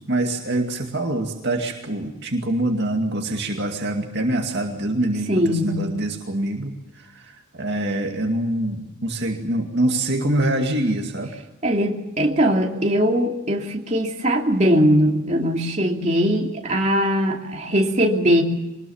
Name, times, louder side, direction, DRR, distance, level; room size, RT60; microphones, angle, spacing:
voice 1, 0.0-11.3, right 1 dB, 55° right, 2 dB, 2.3 m, -25 dB
voice 2, 5.3-5.8 11.6-18.4, equal, 35° right, 0 dB, 2.9 m, -20 dB
24.0 x 20.5 x 7.2 m, 1.0 s
head